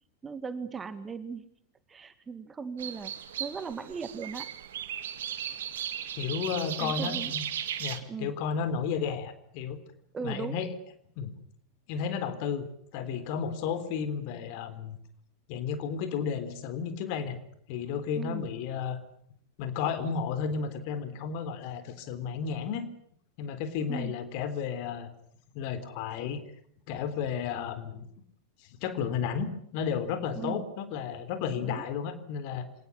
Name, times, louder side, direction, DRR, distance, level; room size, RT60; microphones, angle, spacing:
voice 1, 0.2-1.5 1.9-3.1 3.4-4.5 6.8-7.3 8.1-8.3 10.1-10.6 18.1-18.5 23.9-24.1 30.3-30.6 31.6-31.9, right 5 dB, 15° right, 12 dB, 1.9 m, -37 dB
sound 1, 2.8-8.0, right 10 dB, 60° right, 2.2 m, -36 dB
voice 2, 6.2-7.5 7.8-9.8 10.2-10.7 11.2-11.3 11.9-12.7 12.9-15.0 15.5-17.4 17.7-19.0 19.6-22.9 23.4-25.1 25.5-26.4 26.9-28.1 28.8-32.7, left 6 dB, 45° left, 12 dB, 3.6 m, -33 dB
26.5 x 19.0 x 9.9 m, 0.67 s
figure-of-eight pair, 90°, 0 cm